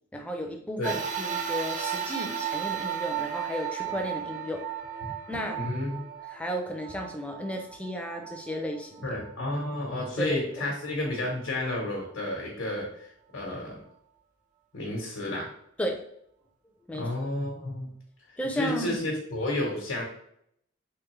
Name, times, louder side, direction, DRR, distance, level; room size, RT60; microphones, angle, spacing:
voice 1, 0.1-4.6 5.3-5.6 6.3-9.2 10.2-10.3 10.6-10.7 15.8-16.0 16.9-17.1 18.4-19.0, equal, 5° left, 2 dB, 0.4 m, -34 dB
sound 1, 0.8-9.4 10.1-10.2 11.3-11.4, right 9 dB, 40° right, 0.6 m, -35 dB
voice 2, 5.5-6.0 9.0-13.8 14.7-15.5 16.9-17.9 18.5-20.0, left 1 dB, 85° left, -2 dB, 1.0 m, -31 dB
3.6 x 3.1 x 3.1 m, 0.72 s
head